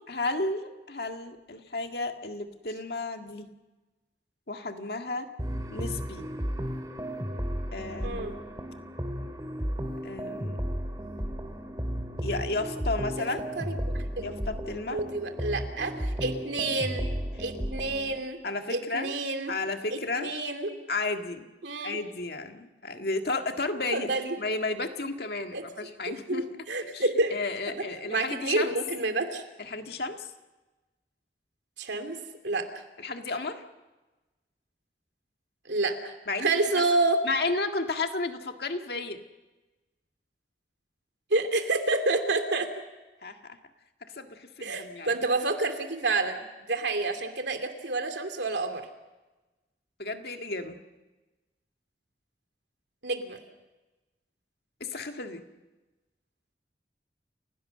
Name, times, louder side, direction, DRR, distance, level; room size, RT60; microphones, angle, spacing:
voice 1, 0.1-3.5 4.5-5.3 5.7-6.3 7.7-8.3 10.0-10.7 12.2-13.5 14.2-15.0 18.4-19.2 19.5-20.3 20.9-21.5 21.8-24.1 24.4-26.5 26.8-28.7 29.6-30.3 33.0-33.6 36.3-36.5 37.2-39.2 43.2-43.6 44.0-45.1 50.0-50.8 54.8-55.4, left 3 dB, 65° left, 5 dB, 1.8 m, -33 dB
sound 1, 5.4-18.2, equal, 20° right, 2.1 m, -34 dB
voice 2, 13.6-14.2 14.9-17.1 17.4-18.4 18.7-19.5 19.9-20.7 21.6-22.0 23.9-24.4 25.5-25.6 26.1-27.4 27.7-27.8 28.1-29.4 31.8-32.2 32.4-32.7 35.6-36.1 36.4-37.2 41.3-42.7 44.6-46.4 46.7-48.8 53.0-53.4, right 2 dB, 90° right, 6 dB, 2.7 m, -29 dB
29.5 x 17.0 x 6.6 m, 1.1 s
head